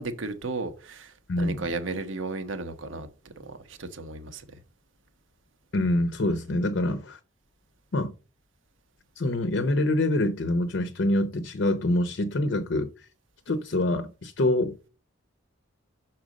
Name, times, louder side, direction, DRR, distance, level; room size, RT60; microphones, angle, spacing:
voice 1, 0.0-3.1 3.4-4.4, right 3 dB, 75° right, 1.0 m, -34 dB
voice 2, 1.3-1.6 5.7-7.2 7.9-8.1 9.2-12.9 13.5-14.9, left 1 dB, 60° left, 0.6 m, -25 dB
6.3 x 4.4 x 5.1 m
head